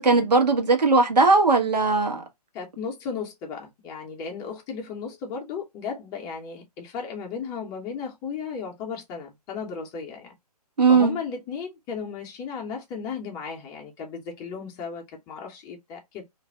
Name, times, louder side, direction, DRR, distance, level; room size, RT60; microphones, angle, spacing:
voice 1, 0.0-2.2 10.8-11.2, right 3 dB, 80° right, 1.0 m, -19 dB
voice 2, 2.5-10.3 10.9-16.2, left 6 dB, 15° left, 0.6 m, -35 dB
2.5 x 2.0 x 3.1 m
figure-of-eight pair, 135°, 21 cm